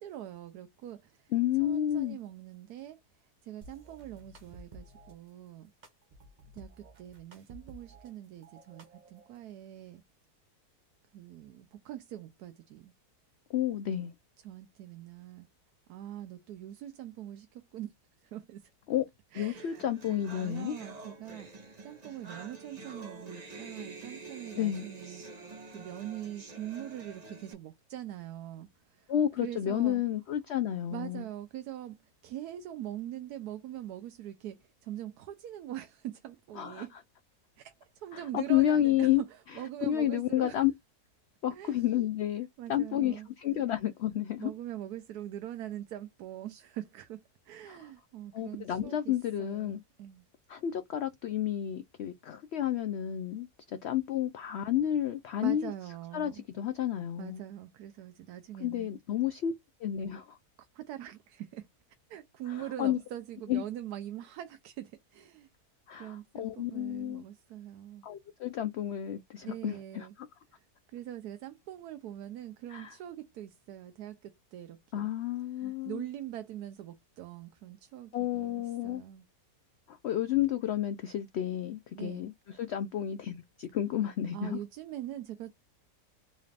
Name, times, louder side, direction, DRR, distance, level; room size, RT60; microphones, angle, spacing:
voice 1, 0.0-1.3 1.6-3.0 3.4-5.7 6.5-10.0 11.1-12.9 14.4-15.5 15.9-17.9 18.2-18.7 19.3-21.5 21.8-25.2 25.7-29.1 29.4-30.0 30.9-37.0 37.6-40.6 41.5-41.8 42.6-43.3 44.4-50.2 55.4-56.4 57.2-58.9 60.6-61.7 62.1-65.5 66.0-68.1 69.4-70.1 70.5-75.1 75.5-79.3 81.9-82.3 84.3-85.5, right 12 dB, 80° right, 1.1 m, -43 dB
voice 2, 1.3-2.2 13.5-14.1 18.9-19.0 19.3-20.8 24.5-24.9 29.1-31.2 36.6-36.8 38.1-39.2 39.9-40.7 41.4-44.5 47.7-47.8 48.3-49.8 50.5-55.7 56.1-57.4 58.6-59.5 59.8-60.4 62.8-63.0 63.5-63.6 65.9-67.2 68.0-70.1 72.7-72.9 74.9-76.0 78.1-79.0 79.9-82.3 82.6-84.6, left 11 dB, 75° left, 0.6 m, -31 dB
sound 1, 3.6-5.1 5.8-8.1 8.4-9.4, right 1 dB, 50° right, 0.6 m, -53 dB
sound 2, 19.5-27.5, right 3 dB, 30° right, 0.9 m, -47 dB
4.0 x 2.4 x 3.2 m
omnidirectional pair, 1.6 m